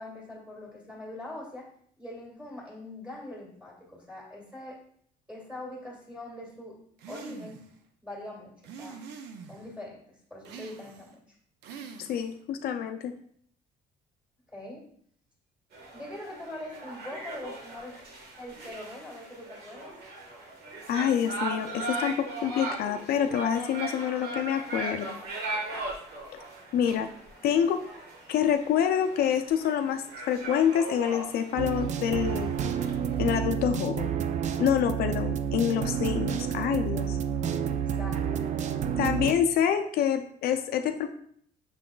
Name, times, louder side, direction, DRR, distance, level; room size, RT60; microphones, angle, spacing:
voice 1, 0.0-1.7 2.0-4.8 5.3-6.8 7.1-7.6 8.0-9.0 9.5-11.2 14.5-14.8 15.9-18.0 18.4-19.9 37.3-38.6, left 1 dB, 5° right, -4 dB, 1.9 m, -42 dB
sound 1, 7.0-7.7 8.6-9.7 10.4-11.2 11.6-12.4, right 6 dB, 90° right, 0.6 m, -45 dB
voice 2, 12.0-13.1 20.9-25.2 26.7-27.1 27.4-27.8 28.3-32.5 33.2-34.1 34.6-37.2 39.0-41.1, left 9 dB, 65° left, 7 dB, 0.4 m, -27 dB
sound 2, 15.7-33.2, right 2 dB, 75° right, 1.3 m, -39 dB
sound 3, 31.6-39.3, right 8 dB, 45° right, 0.4 m, -29 dB
6.2 x 3.8 x 2.3 m, 0.64 s
cardioid pair, 110°, 17 cm